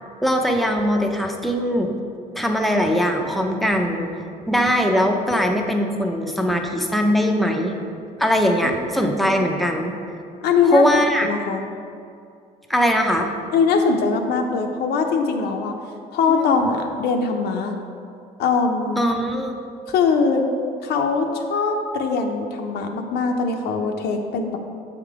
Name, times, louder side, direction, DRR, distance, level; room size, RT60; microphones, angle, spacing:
voice 1, 0.2-2.0 2.3-4.1 4.5-7.8 8.2-10.0 10.6-11.3 12.7-13.3 16.3-16.7 19.0-19.6, equal, ahead, 2 dB, 0.6 m, -21 dB
voice 2, 9.0-9.3 10.4-10.8 11.2-11.6 13.5-15.7 16.1-17.8 18.4-19.0 19.9-20.5 20.8-24.6, left 5 dB, 75° left, 3 dB, 0.6 m, -21 dB
7.4 x 3.7 x 4.7 m, 2.4 s
cardioid pair, 110°, 17 cm